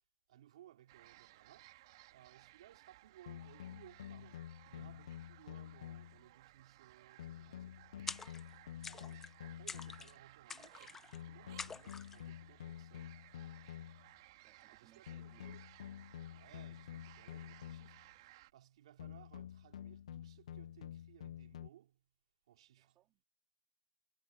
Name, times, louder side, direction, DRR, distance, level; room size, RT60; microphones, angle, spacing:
voice 1, 0.3-1.7 2.1-8.0 8.8-13.2 14.7-15.7 16.3-18.1 18.5-22.0 22.5-23.0, right 12 dB, 60° right, 3.8 m, -62 dB
sound 1, 0.9-18.5, right 17 dB, 45° right, 3.5 m, -61 dB
sound 2, 3.3-6.3 7.2-10.2 11.1-14.1 15.1-18.1 19.0-21.7, left 10 dB, 70° left, 0.5 m, -49 dB
sound 3, 8.1-8.5 8.8-9.3 9.7-10.1 10.5-11.2 11.6-12.2, left 5 dB, 10° left, 0.4 m, -46 dB
voice 2, 14.3-15.6 22.8-23.2, right 14 dB, 20° right, 3.4 m, -69 dB
hypercardioid pair, 170°, 4 cm